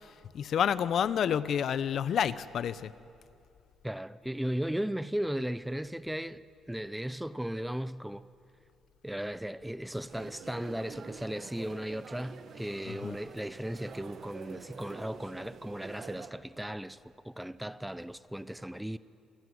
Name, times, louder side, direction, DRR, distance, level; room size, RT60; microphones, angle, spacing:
voice 1, 0.3-2.9 12.9-13.2, left 8 dB, 65° left, 0.9 m, -29 dB
voice 2, 3.8-8.3 9.0-17.0 17.2-19.0, right 1 dB, 5° right, 0.7 m, -36 dB
sound 1, 10.1-16.3, right 6 dB, 55° right, 1.7 m, -47 dB
28.0 x 21.0 x 9.7 m
cardioid pair, 100°, 0 cm